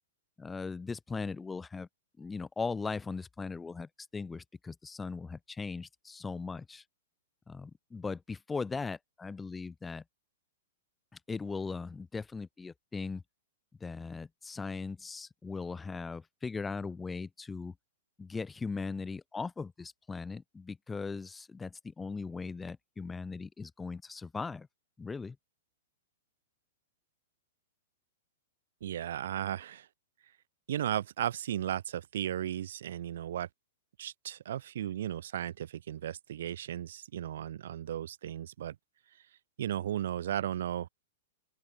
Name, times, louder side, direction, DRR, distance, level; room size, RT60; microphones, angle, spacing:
voice 1, 0.4-1.9 2.2-6.8 7.5-10.0 11.3-13.2 13.8-17.7 18.2-24.7 25.0-25.4, left 4 dB, 10° left, 6.3 m, -39 dB
voice 2, 28.8-29.9 30.7-33.5 34.0-38.7 39.6-40.9, right 11 dB, 70° right, 2.6 m, -35 dB
open air
hypercardioid pair, 120°, 0 cm